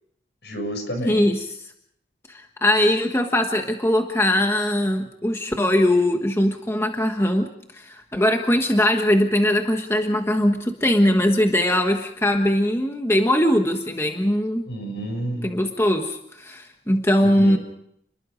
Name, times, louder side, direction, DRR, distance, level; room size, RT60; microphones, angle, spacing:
voice 1, 0.4-1.2 14.7-15.6 17.2-17.6, right 1 dB, 70° left, 6 dB, 6.6 m, -30 dB
voice 2, 1.1-1.5 2.3-7.5 7.7-14.7 15.4-17.6, left 1 dB, 15° left, 4 dB, 1.3 m, -21 dB
30.0 x 21.5 x 5.1 m, 0.73 s
head